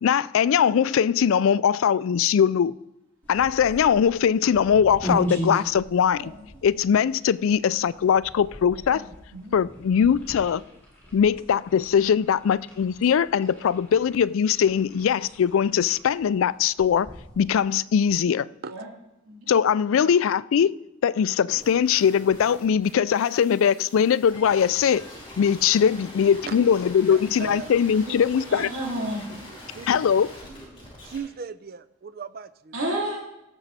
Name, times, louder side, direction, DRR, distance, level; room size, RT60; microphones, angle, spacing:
voice 1, 0.0-2.8 3.3-6.3 6.6-9.0 9.5-10.6 11.1-17.1 17.4-18.5 19.5-20.7 21.0-25.0 25.4-28.7 29.9-30.3, left 7 dB, 65° left, 0.3 m, -21 dB
sound 1, 3.2-17.7, equal, 10° left, 3.8 m, -38 dB
voice 2, 8.9-9.6 18.7-18.9 19.2-19.5 28.5-29.4 30.7-30.8 32.7-33.2, right 1 dB, 65° right, 3.1 m, -32 dB
sound 2, 21.5-31.2, left 1 dB, 25° left, 3.6 m, -44 dB
voice 3, 27.0-27.8 28.1-28.7 29.7-30.0 31.0-32.7, right 4 dB, 45° right, 0.5 m, -37 dB
17.0 x 7.0 x 4.2 m
head